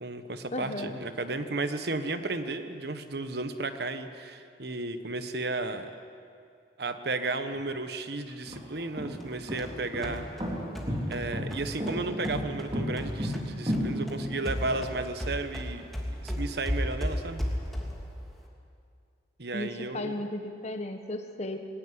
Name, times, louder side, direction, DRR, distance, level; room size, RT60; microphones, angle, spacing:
voice 1, 0.0-5.9 6.8-10.3 11.1-15.9 16.2-17.4 19.4-20.2, right 2 dB, 65° right, 9 dB, 1.3 m, -33 dB
voice 2, 0.5-1.0 19.5-21.6, left 1 dB, 40° left, 6 dB, 1.4 m, -35 dB
sound 1, 8.3-14.8, equal, 30° right, 3.5 m, -32 dB
sound 2, 9.2-13.5 13.7-18.1, equal, ahead, 2.9 m, -35 dB
20.5 x 17.5 x 9.8 m, 2.4 s
head